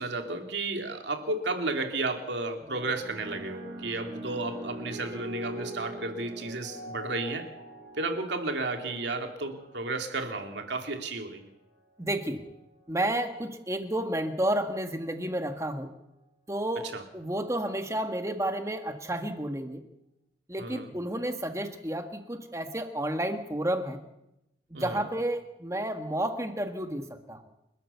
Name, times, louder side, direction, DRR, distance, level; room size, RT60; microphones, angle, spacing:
voice 1, 0.0-7.5 8.0-11.5 16.8-17.0 20.6-20.9 24.7-25.0, right 2 dB, 75° right, 5 dB, 2.6 m, -33 dB
sound 1, 2.6-11.2 12.1-12.5, right 1 dB, 50° right, 5.2 m, -43 dB
voice 2, 12.0-12.4 12.9-15.9 16.5-19.8 20.5-24.0 24.7-27.4, right 1 dB, 15° right, 7 dB, 1.6 m, -31 dB
29.5 x 13.0 x 6.9 m, 0.89 s
head